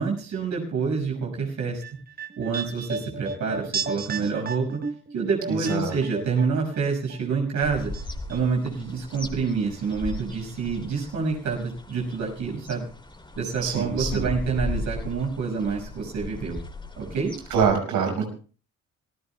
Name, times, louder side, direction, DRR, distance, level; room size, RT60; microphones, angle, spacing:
voice 1, 0.0-2.0 2.4-4.8 5.1-7.9 8.3-12.9 13.4-16.6 17.0-17.3, right 5 dB, 70° right, 0 dB, 6.0 m, -27 dB
sound 1, 1.6-6.8 7.1-8.0 8.3-8.4, right 4 dB, 30° right, 1.2 m, -34 dB
voice 2, 5.5-6.0 13.6-14.3 17.5-18.3, right 6 dB, 85° right, 3 dB, 5.9 m, -25 dB
sound 2, 7.6-17.7, left 2 dB, 15° left, 2.8 m, -37 dB
27.0 x 16.0 x 2.3 m, 0.38 s
cardioid pair, 90°, 30 cm